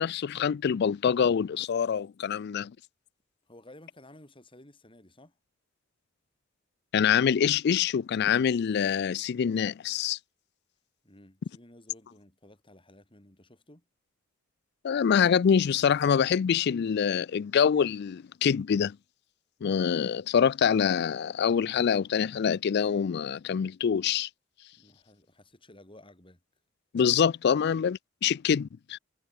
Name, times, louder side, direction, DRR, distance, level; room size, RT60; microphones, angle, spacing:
voice 1, 0.0-2.7 6.9-10.2 14.8-19.0 19.6-24.3 26.9-29.0, left 7 dB, 55° left, 0.3 m, -25 dB
voice 2, 3.5-5.4 11.0-13.8 24.7-26.4 27.5-27.6, left 1 dB, 25° left, 5.8 m, -54 dB
head